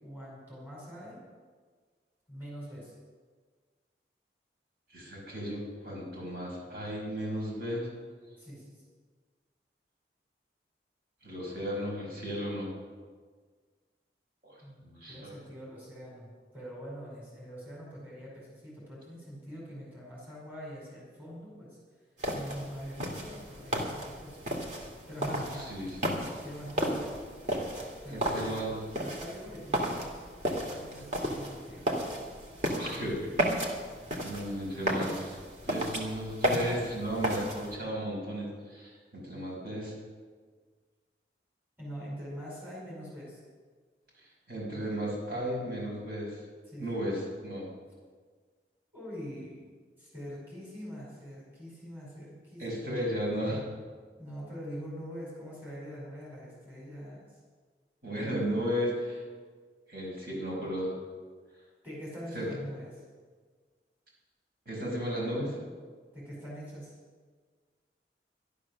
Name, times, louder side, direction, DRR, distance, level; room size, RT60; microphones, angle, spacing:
voice 1, 0.0-1.2 2.3-2.9 8.4-8.8 14.6-21.8 22.3-24.4 25.1-25.7 26.4-27.1 28.0-30.2 30.7-32.2 41.8-43.4 46.6-47.0 48.9-49.7 50.0-52.8 54.2-57.3 61.8-63.0 66.1-66.9, equal, 10° right, -6 dB, 4.9 m, -44 dB
voice 2, 4.9-7.9 11.2-12.7 14.4-14.6 14.8-15.3 25.6-26.0 28.1-28.8 32.8-33.7 34.2-35.4 35.6-39.9 44.5-46.4 46.8-47.7 52.6-53.6 58.0-59.2 59.9-60.9 62.3-62.5 64.7-65.6, equal, 55° right, -4 dB, 5.7 m, -34 dB
sound 1, 22.2-37.7, equal, 40° right, 2.2 m, -34 dB
12.5 x 12.0 x 6.5 m, 1.5 s
head